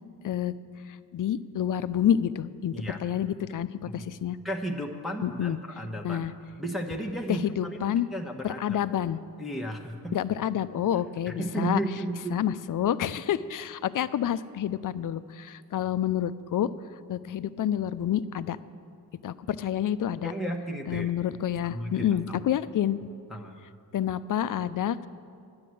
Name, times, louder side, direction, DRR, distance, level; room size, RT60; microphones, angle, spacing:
voice 1, 1.1-2.7 3.0-4.4 5.2-5.6 6.0-6.3 7.3-8.1 8.4-9.2 10.1-11.8 12.3-16.7 17.1-18.6 19.2-20.3 20.9-23.0 23.9-25.1, left 10 dB, 55° left, 15 dB, 0.5 m, -28 dB
voice 2, 3.8-4.2 4.4-6.3 6.6-8.8 9.4-10.2 11.3-12.4 20.2-21.1 21.6-22.3 23.3-23.6, right 1 dB, ahead, 0 dB, 1.1 m, -34 dB
9.9 x 9.6 x 7.7 m, 2.3 s
cardioid pair, 65°, 39 cm